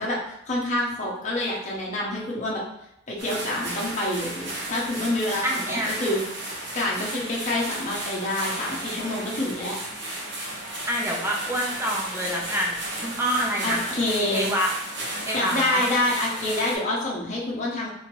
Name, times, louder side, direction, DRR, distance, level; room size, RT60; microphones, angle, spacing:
voice 1, 0.0-2.6 3.1-6.2 6.7-9.7 13.6-14.5 15.3-17.9, left 1 dB, 40° left, -4 dB, 0.9 m, -27 dB
sound 1, 3.2-16.8, right 1 dB, 65° right, 1.1 m, -34 dB
voice 2, 5.4-5.9 10.9-14.7 15.3-15.9, equal, 15° right, -2 dB, 0.7 m, -27 dB
3.8 x 2.8 x 3.0 m, 0.81 s
head